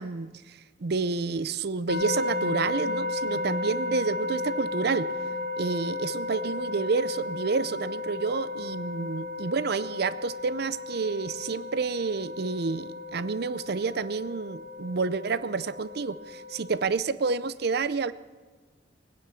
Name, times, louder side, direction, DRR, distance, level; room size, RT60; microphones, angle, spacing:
voice 1, 0.0-5.1 5.6-18.1, right 4 dB, 60° right, 16 dB, 0.6 m, -29 dB
sound 1, 1.9-16.9, left 2 dB, 65° left, 2.0 m, -34 dB
20.0 x 10.0 x 7.1 m, 1.4 s
head